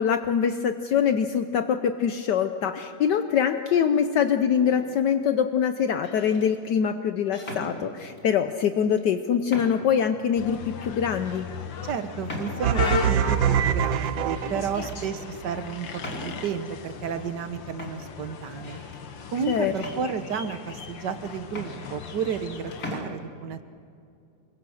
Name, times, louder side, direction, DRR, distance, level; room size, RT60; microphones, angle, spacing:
voice 1, 0.0-11.5 14.8-14.9 19.5-19.7, left 8 dB, 70° left, 8 dB, 1.4 m, -24 dB
sound 1, 4.6-5.1 5.9-6.5 7.3-8.3 9.0-9.1 9.5-10.0 10.5-10.6 11.3-11.4 12.3-12.9 14.1-14.6 14.9-15.2 16.0-16.6 17.4-17.5 17.8-19.0 19.7-20.6 21.2-21.3 21.5-22.5 22.7-23.1, left 1 dB, 50° left, 3.9 m, -39 dB
sound 2, 10.4-23.0, left 6 dB, 85° left, 2.1 m, -37 dB
voice 2, 11.8-18.8 19.3-23.7, right 7 dB, 65° right, 10 dB, 1.7 m, -32 dB
sound 3, 12.6-15.0, right 9 dB, 85° right, 1.5 m, -24 dB
27.0 x 23.0 x 6.4 m, 2.5 s
omnidirectional pair, 2.0 m